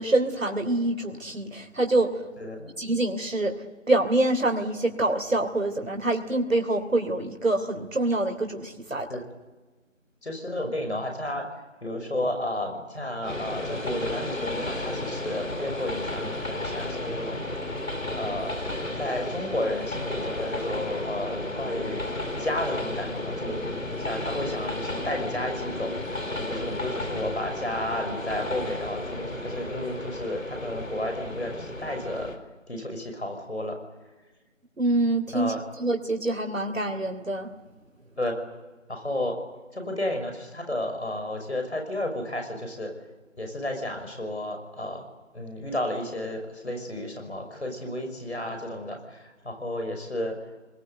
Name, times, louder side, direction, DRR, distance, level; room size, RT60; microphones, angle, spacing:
voice 1, 0.0-2.2 2.8-9.1 34.8-35.5 35.8-37.5, right 2 dB, 75° right, 4 dB, 3.2 m, -25 dB
voice 2, 2.4-2.7 9.1-9.2 10.2-11.5 11.8-17.4 18.1-18.7 19.0-22.0 22.4-32.3 32.7-33.8 35.3-35.6 38.2-38.3 38.9-39.4 39.7-42.9 43.4-45.1 45.3-50.4, left 1 dB, 55° left, 5 dB, 6.0 m, -32 dB
Train, 13.2-32.4, left 1 dB, 90° left, 3.9 m, -33 dB
27.5 x 20.5 x 8.1 m, 1.2 s
figure-of-eight pair, 180°, 39 cm